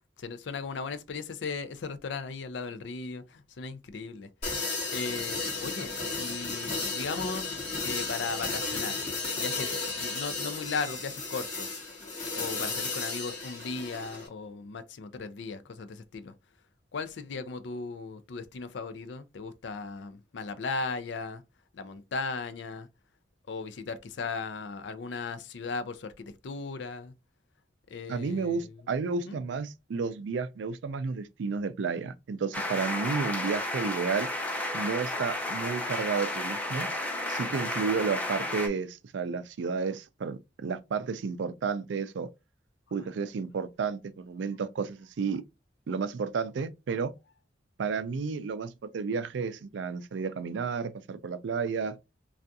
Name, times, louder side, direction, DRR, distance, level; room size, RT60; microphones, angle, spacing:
voice 1, 0.2-4.3 4.9-5.9 6.2-9.1 9.3-11.8 12.3-16.3 16.9-21.4 21.7-22.9 23.5-27.1 27.9-28.8 29.3-29.4, left 4 dB, 75° left, 0.5 m, -37 dB
sound 1, 4.4-14.3, left 3 dB, 45° left, 1.9 m, -34 dB
voice 2, 28.1-34.3 34.7-36.9 37.3-42.3 42.9-45.4 45.9-47.1 47.8-52.0, right 5 dB, 80° right, 0.4 m, -32 dB
sound 2, 32.5-38.7, left 1 dB, 10° left, 0.6 m, -32 dB
3.4 x 2.4 x 2.6 m
head